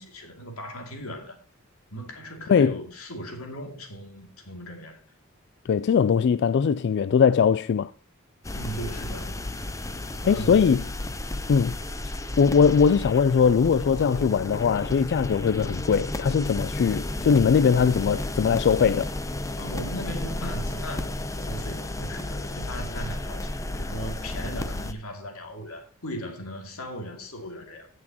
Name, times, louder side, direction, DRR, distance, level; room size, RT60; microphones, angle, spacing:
voice 1, 0.0-1.4 1.9-5.0 8.5-9.5 10.2-10.9 19.6-27.9, equal, 80° left, 2.6 m, -38 dB
voice 2, 5.7-7.9 10.2-10.8 11.5-11.7 12.4-19.1, left 6 dB, 55° left, 0.3 m, -21 dB
sound 1, 8.4-24.9, left 1 dB, 15° left, 0.7 m, -33 dB
16.0 x 6.2 x 2.9 m
head